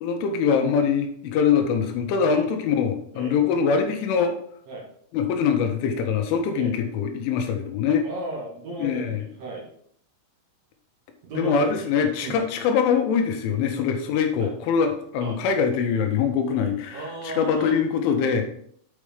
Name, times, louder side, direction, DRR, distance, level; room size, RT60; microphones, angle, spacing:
voice 1, 0.0-4.4 5.1-8.1 8.8-9.2 11.3-18.4, left 6 dB, 75° left, 5 dB, 3.3 m, -23 dB
voice 2, 8.0-9.7 11.2-11.9 12.2-12.4 14.4-14.5 15.2-15.4 16.9-17.7, right 3 dB, 90° right, -4 dB, 1.5 m, -35 dB
8.5 x 4.9 x 5.0 m, 0.64 s
omnidirectional pair, 5.9 m